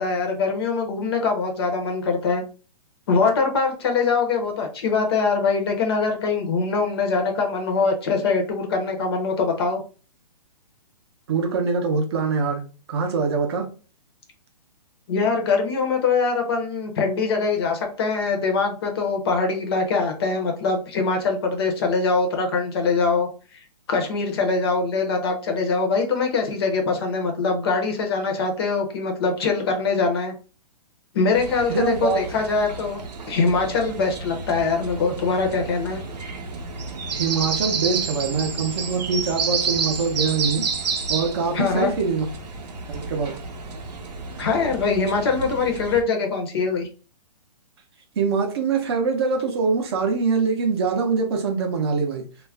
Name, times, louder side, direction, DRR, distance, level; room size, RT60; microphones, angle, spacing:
voice 1, 0.0-2.4 3.1-9.8 15.1-23.3 23.9-30.3 31.1-33.0 33.3-36.0 41.5-41.9 44.4-46.9, left 4 dB, 35° left, 3 dB, 0.5 m, -23 dB
voice 2, 11.3-13.7 31.7-32.2 37.1-40.7 41.1-42.3 42.9-43.4 48.2-52.3, right 4 dB, 40° right, 4 dB, 0.5 m, -24 dB
sound 1, 31.3-46.0, right 5 dB, 85° right, 0.7 m, -30 dB
2.3 x 2.0 x 3.3 m, 0.36 s
hypercardioid pair, 160°, 21 cm